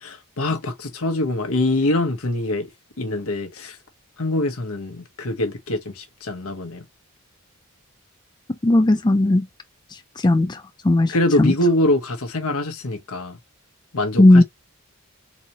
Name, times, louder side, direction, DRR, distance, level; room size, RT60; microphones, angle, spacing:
voice 1, 0.0-2.7 3.0-3.8 4.2-6.8 11.1-13.4 13.9-14.4, left 1 dB, 70° left, 1.1 m, -24 dB
voice 2, 8.6-9.5 10.2-10.6 10.8-11.1 11.4-11.5 14.2-14.4, left 1 dB, 20° left, 0.4 m, -15 dB
4.1 x 2.9 x 3.0 m
head